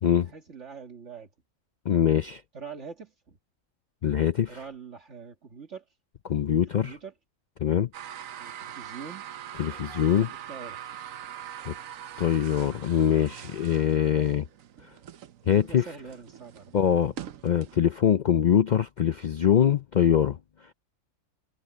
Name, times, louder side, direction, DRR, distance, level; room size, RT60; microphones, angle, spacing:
voice 1, 0.2-1.3 2.5-3.4 4.5-5.9 6.7-7.1 8.4-9.2 10.5-10.8 15.5-16.8, right 6 dB, 60° right, 2.1 m, -43 dB
voice 2, 1.9-2.4 4.0-4.6 6.3-7.0 7.6-7.9 9.6-10.3 11.7-11.8 12.2-14.4 15.5-15.9 16.7-17.1 17.4-20.4, left 9 dB, 65° left, 0.4 m, -23 dB
sound 1, 7.9-17.8, right 10 dB, 80° right, 1.2 m, -43 dB
omnidirectional pair, 1.4 m